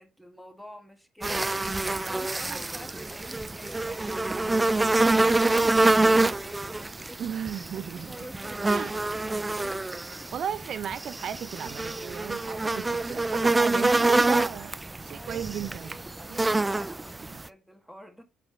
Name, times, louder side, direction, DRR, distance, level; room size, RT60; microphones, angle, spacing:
voice 1, 0.0-1.5 1.9-7.2 7.7-9.3 9.6-10.3 15.1-18.2, equal, ahead, 1.6 m, -47 dB
sound 1, 1.2-17.5, right 2 dB, 20° right, 0.4 m, -26 dB
voice 2, 7.2-8.2 8.7-8.9 10.3-16.0 16.3-16.4 17.3-17.4, right 8 dB, 65° right, 0.6 m, -35 dB
7.0 x 3.2 x 6.0 m
cardioid pair, 90°, 0 cm